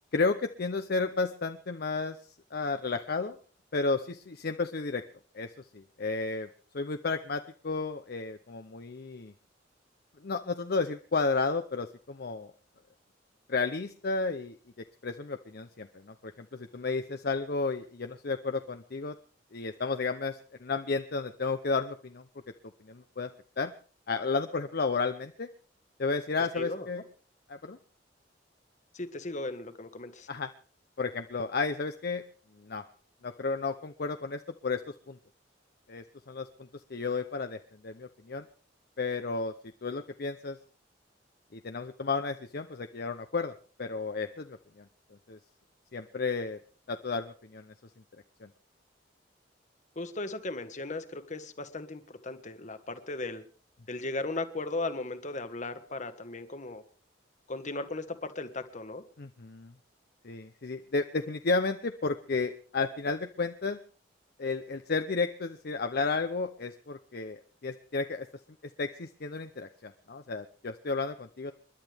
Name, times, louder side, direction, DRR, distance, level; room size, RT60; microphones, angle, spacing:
voice 1, 0.1-2.2 2.5-3.4 3.7-5.0 5.3-5.5 5.7-6.5 6.7-9.3 10.2-12.5 13.5-14.5 15.0-15.9 16.2-19.1 19.5-22.2 22.9-23.3 23.6-23.7 24.1-25.5 26.0-27.0 27.5-27.8 30.3-30.5 31.0-32.2 32.7-32.8 33.2-34.8 35.1-35.2 35.9-36.5 36.9-38.4 39.0-39.5 39.8-40.6 41.5-43.5 43.8-44.6 45.3-45.4 45.9-46.6 46.9-47.6 48.4-48.5 59.2-59.7 60.2-63.8 64.4-68.3 68.8-71.5, left 4 dB, 55° left, 7 dB, 0.7 m, -32 dB
voice 2, 26.5-26.9 28.9-30.3 49.9-53.4 53.9-56.8 57.5-59.0, left 2 dB, 40° left, 10 dB, 1.4 m, -37 dB
29.0 x 11.0 x 3.5 m, 0.43 s
head